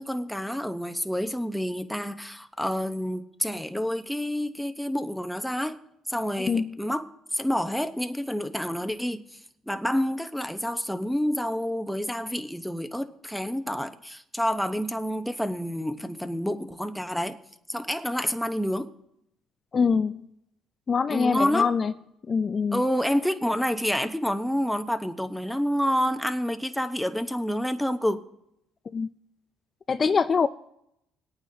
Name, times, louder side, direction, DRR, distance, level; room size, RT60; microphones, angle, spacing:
voice 1, 0.0-5.8 6.1-9.4 9.7-17.4 17.7-18.9 21.1-21.7 22.7-28.2, equal, ahead, 0.9 m, -28 dB
voice 2, 6.4-6.7 19.7-20.2 20.9-21.9 22.3-22.8 28.9-29.1 29.9-30.5, left 5 dB, 35° left, 0.4 m, -24 dB
20.5 x 8.9 x 2.8 m
supercardioid pair, 85°, 0 cm